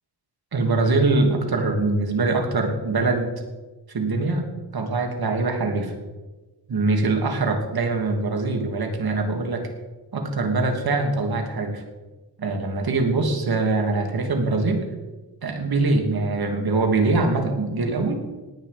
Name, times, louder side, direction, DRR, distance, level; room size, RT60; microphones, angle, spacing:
voice 1, 0.5-3.3 3.9-4.5 4.7-5.9 6.7-9.7 10.1-11.8 12.4-14.8 15.4-18.2, right 3 dB, 60° right, 3 dB, 2.8 m, -23 dB
18.5 x 8.8 x 5.3 m, 1.2 s
wide cardioid pair, 90°, 41 cm